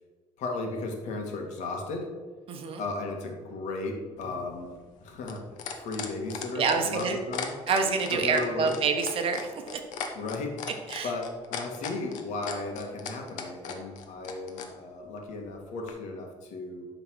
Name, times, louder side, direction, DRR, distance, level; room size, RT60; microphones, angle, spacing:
voice 1, 0.4-2.1 2.8-4.7 5.0-5.4 5.8-7.5 8.1-8.7 10.1-10.6 11.0-16.9, left 3 dB, 70° left, 2 dB, 1.8 m, -35 dB
voice 2, 2.5-2.8 6.5-7.2 7.7-9.8 10.9-11.1, right 5 dB, 50° right, 4 dB, 1.2 m, -27 dB
sound 1, 4.2-14.7 15.9-16.0, left 7 dB, 90° left, 1.2 m, -37 dB
11.5 x 4.0 x 6.2 m, 1.4 s
cardioid pair, 160°, 13 cm